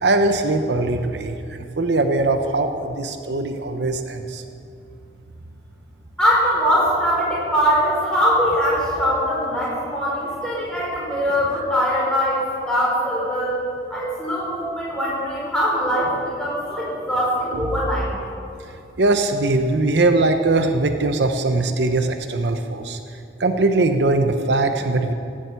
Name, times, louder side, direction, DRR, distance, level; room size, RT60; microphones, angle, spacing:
voice 1, 0.0-1.3 1.8-4.4 19.0-23.0 23.4-25.1, right 2 dB, 75° right, 7 dB, 0.8 m, -20 dB
voice 2, 6.2-13.6 13.9-18.1, equal, 5° left, -6 dB, 4.5 m, -22 dB
16.5 x 7.6 x 8.2 m, 2.6 s
head